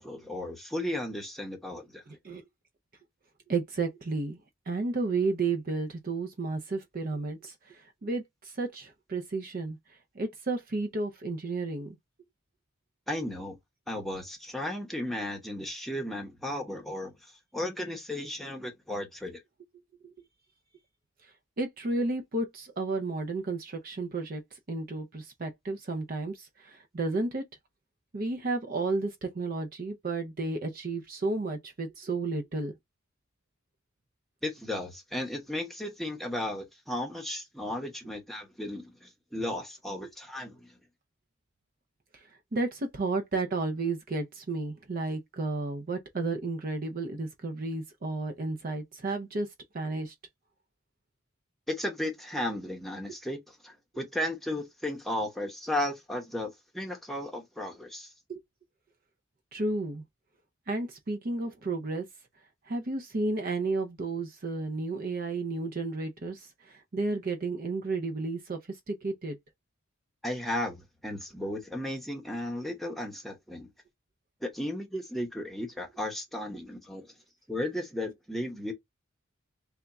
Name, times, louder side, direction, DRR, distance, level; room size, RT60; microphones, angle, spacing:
voice 1, 0.0-2.0 13.1-13.6 13.9-19.4 34.4-40.7 51.7-58.1 70.2-73.7 74.4-77.1 77.5-78.7, left 1 dB, ahead, 0.9 m, -35 dB
voice 2, 2.1-2.4 3.5-4.4 4.7-9.8 10.1-12.0 20.0-20.1 21.6-24.4 24.7-27.4 28.1-32.7 40.0-40.1 42.1-42.2 42.5-49.5 49.7-50.1 58.3-58.4 59.5-60.0 60.7-62.0 62.7-69.4, right 3 dB, 40° right, 0.5 m, -32 dB
3.5 x 2.3 x 3.9 m
head